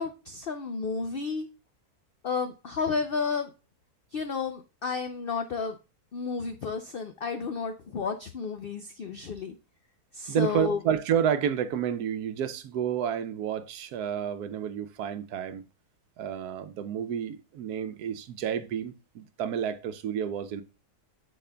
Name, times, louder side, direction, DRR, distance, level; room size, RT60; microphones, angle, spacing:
voice 1, 0.0-1.5 2.2-3.5 4.1-5.8 6.1-9.5 10.1-10.8, left 5 dB, 90° left, 0.5 m, -31 dB
voice 2, 10.3-15.7 16.2-20.6, right 9 dB, 85° right, 1.1 m, -30 dB
10.5 x 4.2 x 2.2 m
omnidirectional pair, 1.6 m